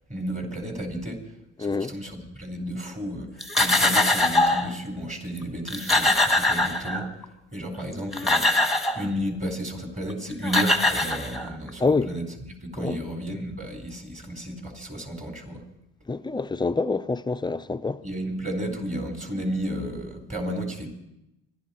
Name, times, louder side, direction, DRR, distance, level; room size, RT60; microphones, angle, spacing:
voice 1, 0.1-1.2 1.6-7.1 7.5-8.5 8.9-15.6 18.0-20.9, equal, 25° right, 3.9 m, -32 dB
voice 2, 1.6-1.9 11.8-12.1 12.8-13.0 16.1-18.0, left 4 dB, 15° left, 0.5 m, -26 dB
sound 1, 3.4-4.7 5.4-5.5 5.7-7.2 7.9-9.1 10.1-10.2 10.4-11.7, left 2 dB, ahead, 1.4 m, -22 dB
25.0 x 11.5 x 4.3 m
cardioid pair, 90°, 30 cm